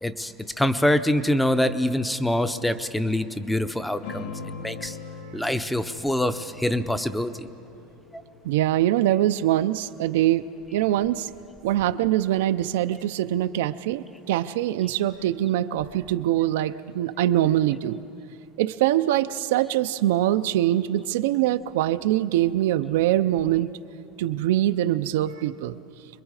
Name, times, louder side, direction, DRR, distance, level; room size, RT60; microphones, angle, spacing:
voice 1, 0.0-4.3 4.6-5.0 5.3-7.5 8.1-8.2, left 1 dB, 5° left, 11 dB, 0.6 m, -25 dB
sound 1, 4.0-8.9, left 4 dB, 75° left, 4.6 m, -41 dB
voice 2, 8.4-11.3 11.6-18.0 18.6-23.7 24.2-25.8, right 13 dB, 85° right, 10 dB, 0.5 m, -23 dB
27.0 x 22.0 x 4.9 m, 2.7 s
supercardioid pair, 170°, 0 cm